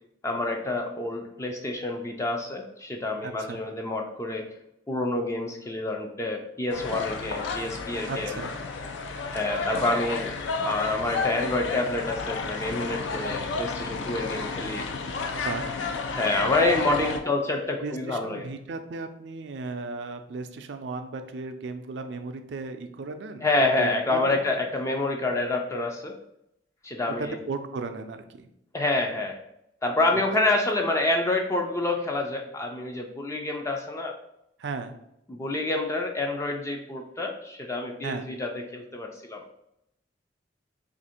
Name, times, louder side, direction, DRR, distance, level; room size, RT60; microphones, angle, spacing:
voice 1, 0.2-4.4 4.9-8.4 9.3-10.3 10.6-14.8 16.1-18.4 23.4-26.1 26.8-27.4 28.7-29.4 29.8-34.2 35.3-39.4, left 2 dB, 15° left, 2 dB, 0.3 m, -27 dB
voice 2, 3.2-3.6 8.1-8.5 15.4-15.7 17.1-17.2 17.8-24.4 27.1-28.5 34.6-35.0 38.0-38.3, right 4 dB, 70° right, 8 dB, 0.4 m, -35 dB
sound 1, 6.7-17.2, left 4 dB, 90° left, 0.4 m, -31 dB
2.8 x 2.5 x 4.2 m, 0.79 s
head